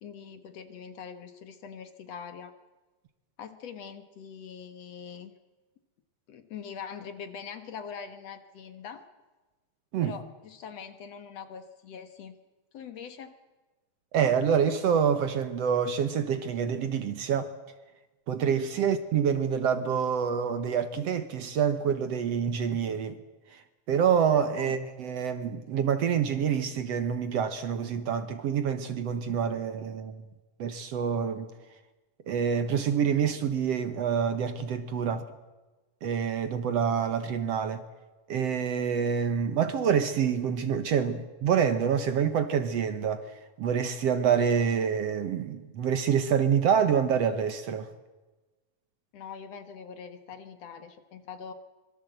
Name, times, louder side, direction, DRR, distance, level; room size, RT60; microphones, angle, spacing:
voice 1, 0.0-2.5 3.4-5.3 6.3-9.0 10.0-12.4 12.7-13.3 18.7-18.9 24.5-24.8 49.1-51.5, left 7 dB, 60° left, 2.3 m, -43 dB
voice 2, 14.1-17.5 18.3-23.2 23.5-30.2 30.6-31.5 32.3-35.2 36.0-37.8 38.3-47.9, right 7 dB, 60° right, 2.0 m, -27 dB
25.0 x 22.0 x 8.0 m
omnidirectional pair, 3.6 m